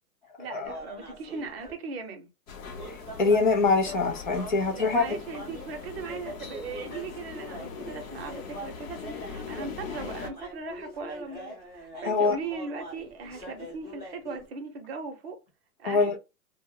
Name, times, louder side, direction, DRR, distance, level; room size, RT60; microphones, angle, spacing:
voice 1, 0.4-2.3 4.7-15.4 15.8-16.1, right 4 dB, 40° right, 0.7 m, -39 dB
sound 1, 0.6-1.7 2.6-14.5, equal, 10° left, 0.8 m, -43 dB
sound 2, 2.5-10.3, left 5 dB, 60° left, 0.8 m, -41 dB
voice 2, 2.9-5.0 12.0-12.4 15.8-16.2, left 4 dB, 35° left, 0.4 m, -24 dB
2.1 x 2.1 x 3.7 m
hypercardioid pair, 155°, 46 cm